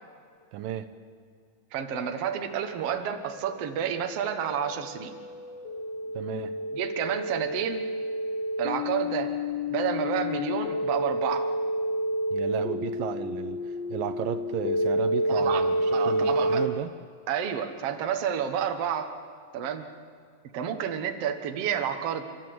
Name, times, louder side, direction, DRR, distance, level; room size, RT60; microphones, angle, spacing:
voice 1, 0.5-0.9 6.1-6.5 12.3-15.7 16.1-16.9, right 10 dB, 85° right, 8 dB, 2.6 m, -33 dB
voice 2, 1.7-5.1 6.7-7.8 8.6-9.3 9.7-11.5 15.3-16.7 17.3-19.1 19.5-19.9 20.5-22.2, right 8 dB, 55° right, 6 dB, 2.1 m, -30 dB
sound 1, 3.4-16.7, equal, 60° left, 2.0 m, -30 dB
30.0 x 13.5 x 7.9 m, 2.3 s
omnidirectional pair, 3.9 m